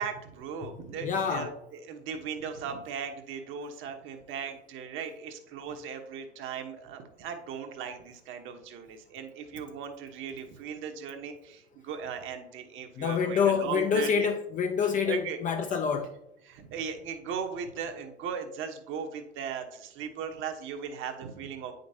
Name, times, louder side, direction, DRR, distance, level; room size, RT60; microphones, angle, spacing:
voice 1, 0.0-14.3 15.1-15.4 16.5-21.7, right 6 dB, 40° right, 1.1 m, -38 dB
voice 2, 1.0-1.5 13.0-16.1, left 6 dB, 25° left, 0.5 m, -27 dB
8.9 x 5.2 x 2.7 m
figure-of-eight pair, 85°, 32 cm